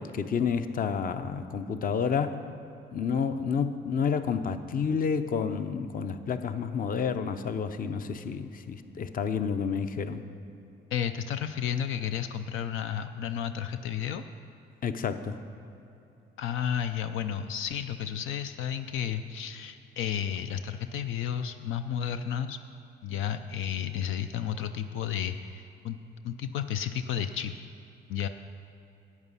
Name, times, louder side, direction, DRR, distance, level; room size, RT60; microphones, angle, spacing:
voice 1, 0.0-2.4 2.9-10.2 14.8-15.4, left 6 dB, 45° left, 10 dB, 0.6 m, -30 dB
voice 2, 10.9-14.2 16.4-22.6 23.0-26.0 26.2-27.5 28.1-28.3, left 9 dB, 85° left, 9 dB, 0.5 m, -32 dB
11.0 x 8.2 x 5.6 m, 2.8 s
cardioid pair, 90°, 20 cm